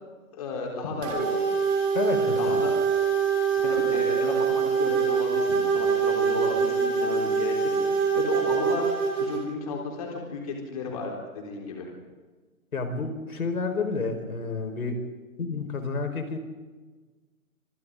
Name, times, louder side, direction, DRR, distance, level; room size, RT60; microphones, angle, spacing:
voice 1, 0.3-1.6 2.2-2.7 3.3-11.9, left 4 dB, 25° left, 0 dB, 4.1 m, -33 dB
sound 1, 1.0-9.4, right 6 dB, 10° right, 2.5 m, -24 dB
voice 2, 1.9-2.6 12.7-15.0 15.4-16.4, left 4 dB, 85° left, 6 dB, 5.0 m, -30 dB
26.0 x 26.0 x 3.9 m, 1.3 s
hypercardioid pair, 175°, 42 cm